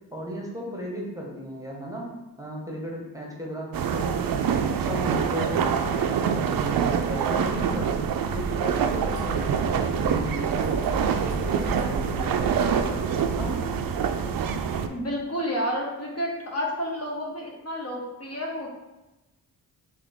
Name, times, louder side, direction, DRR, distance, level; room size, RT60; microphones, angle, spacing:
voice 1, 0.1-2.1 2.4-4.1 4.5-7.9 8.3-10.8 11.2-13.5, equal, 10° right, -2 dB, 1.0 m, -35 dB
sound 1, 3.7-14.9, right 7 dB, 60° right, 0.5 m, -25 dB
sound 2, 8.2-13.6, right 1 dB, 60° left, 1.2 m, -37 dB
voice 2, 14.9-18.7, equal, 40° left, -2 dB, 1.0 m, -30 dB
3.8 x 3.3 x 3.5 m, 1.0 s
cardioid pair, 65°, 40 cm